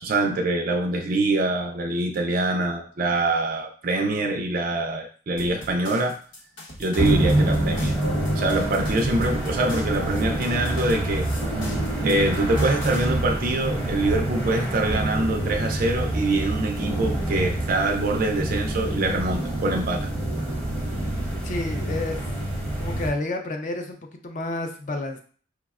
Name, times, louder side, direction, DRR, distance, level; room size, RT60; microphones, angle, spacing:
voice 1, 0.0-6.2 6.8-8.0 8.4-11.3 12.0-20.1, right 2 dB, 45° right, 3 dB, 0.3 m, -24 dB
sound 1, 5.4-13.1, left 1 dB, 90° left, 1.0 m, -41 dB
sound 2, 7.0-23.1, right 1 dB, 10° left, 0.8 m, -26 dB
sound 3, 7.2-9.3, equal, 65° left, 0.9 m, -37 dB
voice 2, 21.4-22.2 22.8-25.2, left 2 dB, 40° left, 4 dB, 0.4 m, -30 dB
4.7 x 2.1 x 2.3 m, 0.44 s
head